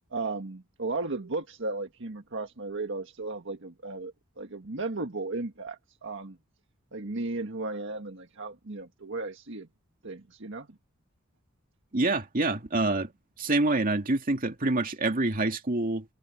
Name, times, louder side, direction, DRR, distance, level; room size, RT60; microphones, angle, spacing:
voice 1, 0.1-6.4 6.9-9.7 10.0-10.7, right 3 dB, 65° right, 1.7 m, -35 dB
voice 2, 11.9-13.1 13.4-16.1, right 2 dB, 45° right, 2.3 m, -26 dB
head